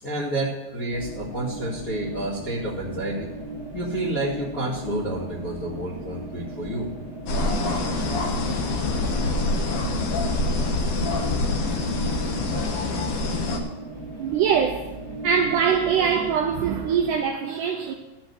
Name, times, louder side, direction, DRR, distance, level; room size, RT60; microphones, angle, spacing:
voice 1, 0.0-3.3 3.7-6.9, right 1 dB, 35° left, 1.6 m, -29 dB
sound 1, 0.9-17.2, right 2 dB, 10° left, 1.1 m, -37 dB
sound 2, 7.3-13.6, left 2 dB, 80° left, 1.3 m, -25 dB
voice 2, 14.2-14.9 15.2-17.9, right 7 dB, 90° right, 1.8 m, -23 dB
13.0 x 5.3 x 8.0 m
omnidirectional pair, 4.5 m